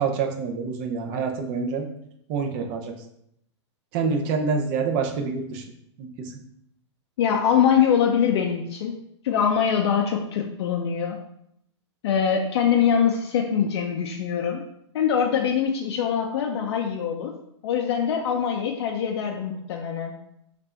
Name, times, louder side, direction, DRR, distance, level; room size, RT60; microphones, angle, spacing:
voice 1, 0.0-1.9 2.3-2.9 3.9-5.7 6.0-6.3, right 5 dB, 40° right, 3 dB, 0.7 m, -26 dB
voice 2, 7.2-9.0 9.2-11.2 12.0-14.6 14.9-20.1, left 8 dB, 60° left, 2 dB, 0.5 m, -23 dB
3.4 x 2.5 x 4.3 m, 0.75 s
hypercardioid pair, 125°, 15 cm